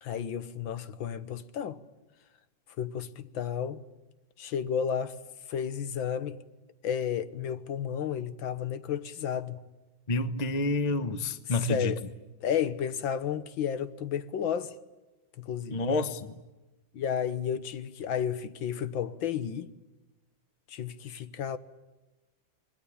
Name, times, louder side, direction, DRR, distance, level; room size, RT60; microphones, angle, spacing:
voice 1, 0.0-1.8 2.8-3.8 4.4-5.2 5.5-6.4 6.8-9.6 11.7-12.0 12.4-14.8 15.4-15.8 16.9-19.7 20.7-21.6, left 8 dB, 90° left, 1.9 m, -32 dB
voice 2, 10.1-11.9 15.7-16.4, left 2 dB, 25° left, 1.0 m, -29 dB
26.5 x 21.0 x 8.6 m
omnidirectional pair, 2.1 m